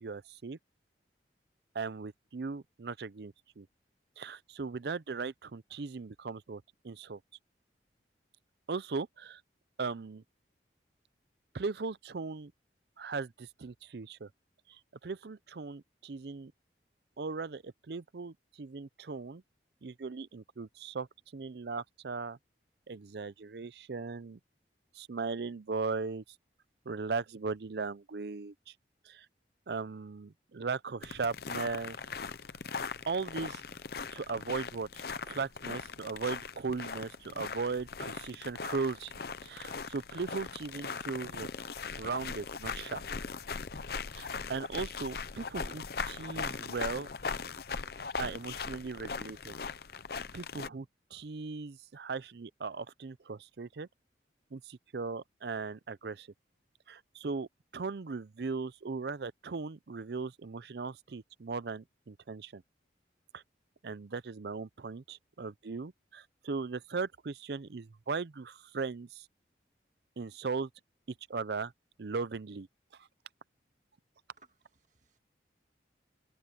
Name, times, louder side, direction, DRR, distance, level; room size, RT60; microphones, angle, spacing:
voice 1, 0.0-0.6 1.7-3.7 4.2-7.2 8.7-9.4 9.8-10.2 11.5-12.5 13.0-14.3 14.7-16.5 17.2-19.4 19.8-21.1 21.3-22.4 22.9-24.4 24.9-26.2 26.9-28.7 29.0-29.3 29.7-32.0 33.1-33.6 34.1-39.1 39.4-41.5 42.0-43.0 44.1-47.1 48.2-49.5 50.3-53.9 54.5-56.3 56.9-62.6 63.3-63.4 63.8-69.3 70.2-70.7 71.3-71.7 72.0-72.7, right 4 dB, 65° right, 0.5 m, -38 dB
sound 1, 31.0-50.7, left 5 dB, 55° left, 0.7 m, -40 dB
voice 2, 74.4-75.2, right 3 dB, 40° right, 1.8 m, -64 dB
head